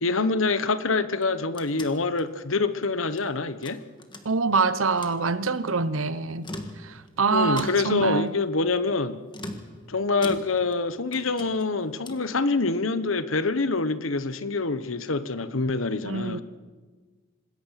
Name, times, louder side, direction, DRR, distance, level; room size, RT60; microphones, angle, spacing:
voice 1, 0.0-3.8 7.3-9.2 9.9-16.4, left 3 dB, 85° left, 1.2 m, -26 dB
sound 1, 1.1-3.3 3.6-4.6 4.9-5.2 6.3-7.1 7.6-8.1 9.3-10.8 11.1-12.3, left 1 dB, 25° left, 1.9 m, -41 dB
voice 2, 4.2-6.5 6.8-8.3 16.0-16.4, right 4 dB, 90° right, 1.0 m, -25 dB
26.5 x 20.5 x 5.9 m
head